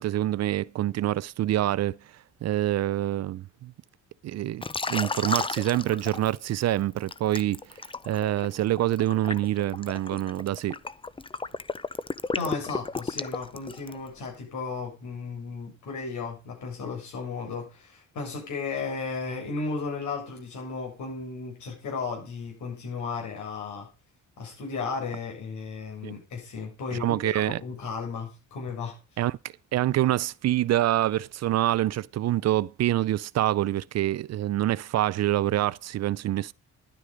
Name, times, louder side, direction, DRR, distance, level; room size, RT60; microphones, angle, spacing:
voice 1, 0.0-2.0 2.4-3.7 4.2-4.6 4.9-7.6 8.1-10.7 26.0-26.1 26.9-27.6 29.2-29.4 29.7-36.5, right 13 dB, 60° right, 0.5 m, -26 dB
Liquid, 4.6-6.6 7.1-14.1, left 3 dB, 15° left, 0.7 m, -33 dB
voice 2, 12.3-23.9 24.4-28.9, left 4 dB, 75° left, 7.9 m, -34 dB
11.5 x 9.8 x 5.2 m
cardioid pair, 90°, 30 cm